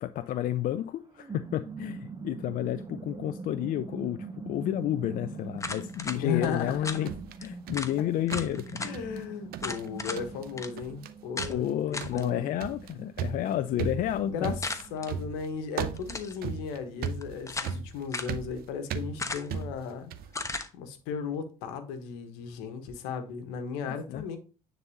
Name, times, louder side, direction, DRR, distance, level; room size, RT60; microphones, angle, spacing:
voice 1, 0.0-7.1 7.4-8.9 11.5-14.6 24.1-24.2, left 12 dB, 50° left, 0.4 m, -31 dB
sound 1, 0.8-15.1, right 3 dB, 20° right, 0.7 m, -44 dB
sound 2, 5.6-6.2 6.8-7.0 7.4-7.5 7.7-7.9 8.3-8.9 9.6-10.2 10.6-10.7 11.4-11.5 11.9-12.2 14.6-15.1 16.0-16.4 17.1-17.8 18.1-18.4 19.2-19.6 20.3-20.7, left 3 dB, 15° left, 1.1 m, -35 dB
sound 3, 6.0-8.0 8.3-9.2 9.5-9.9 10.2-10.5 10.8-11.1 11.4-20.4, right 7 dB, 60° right, 0.7 m, -37 dB
voice 2, 6.1-7.0 8.8-12.5 14.2-14.6 14.9-20.1 20.7-24.4, left 6 dB, 75° left, 1.3 m, -35 dB
9.7 x 4.0 x 2.8 m
hypercardioid pair, 60°, 18 cm